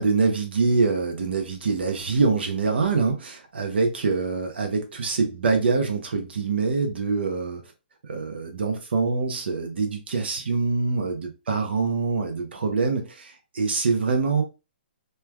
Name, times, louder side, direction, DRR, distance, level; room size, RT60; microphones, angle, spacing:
voice 1, 0.0-7.6 8.0-14.4, right 4 dB, 75° right, 0.7 m, -25 dB
3.1 x 2.2 x 2.2 m
hypercardioid pair, 155°, 6 cm